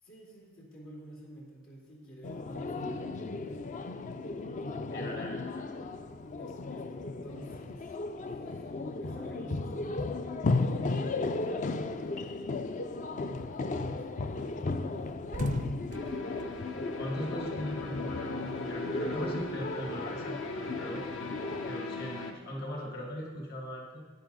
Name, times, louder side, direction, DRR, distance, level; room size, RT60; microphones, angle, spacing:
voice 1, 0.0-3.6 6.3-8.7 9.0-10.1 10.4-12.6 13.1-15.1 18.3-18.8, right 1 dB, 90° left, -5 dB, 2.8 m, -50 dB
sound 1, 2.2-21.7, left 3 dB, 40° left, 0.4 m, -35 dB
voice 2, 4.9-5.7 16.9-21.0 21.6-24.0, equal, 55° left, -1 dB, 1.8 m, -39 dB
sound 2, 13.2-13.5 13.9-14.1 14.3-14.5 14.8-17.8 18.1-19.7, right 3 dB, 40° right, 0.4 m, -46 dB
sound 3, 15.9-22.3, left 3 dB, 70° left, 1.0 m, -40 dB
10.5 x 9.5 x 4.0 m, 1.4 s
head